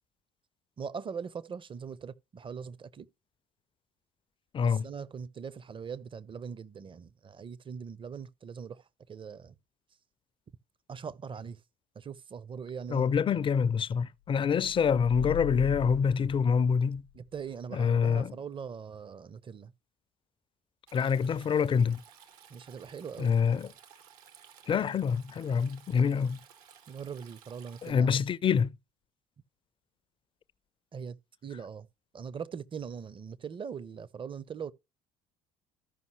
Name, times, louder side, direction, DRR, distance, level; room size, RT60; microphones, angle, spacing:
voice 1, 0.8-3.1 4.6-9.6 10.9-11.6 11.9-13.4 17.1-19.7 22.5-23.4 26.9-28.2 30.9-31.2 31.4-31.9 32.1-34.7, right 6 dB, 25° right, 0.5 m, -41 dB
voice 2, 4.5-4.8 12.9-17.0 17.8-18.3 20.9-22.0 23.2-23.7 24.7-26.4 27.8-28.7, left 6 dB, 25° left, 0.4 m, -26 dB
sound 1, 14.6-17.2, left 16 dB, 80° left, 0.5 m, -39 dB
Stream, 20.9-27.9, right 8 dB, 75° right, 1.1 m, -56 dB
14.0 x 5.4 x 3.1 m
hypercardioid pair, 55°, 19 cm